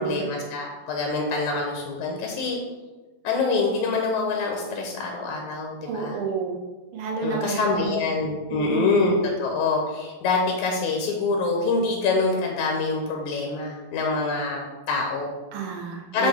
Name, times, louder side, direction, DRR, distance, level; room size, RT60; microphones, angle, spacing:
voice 1, 0.0-2.6 3.2-6.2 7.2-15.3 16.1-16.3, left 3 dB, 85° left, 1 dB, 2.4 m, -25 dB
voice 2, 5.9-6.6 6.9-8.1 8.5-9.1 15.5-16.3, right 5 dB, 60° right, 0 dB, 1.8 m, -30 dB
6.1 x 6.0 x 3.6 m, 1.2 s
omnidirectional pair, 3.3 m